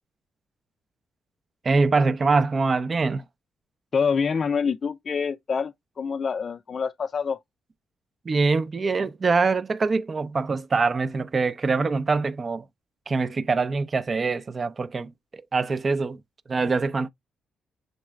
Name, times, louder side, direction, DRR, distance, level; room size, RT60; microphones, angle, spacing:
voice 1, 1.6-3.2 8.2-12.6 13.1-15.1 15.5-16.2 16.5-17.1, right 4 dB, 40° right, 0.5 m, -24 dB
voice 2, 3.9-7.4, left 6 dB, 50° left, 0.3 m, -26 dB
6.4 x 3.0 x 2.2 m
supercardioid pair, 55°, 0 cm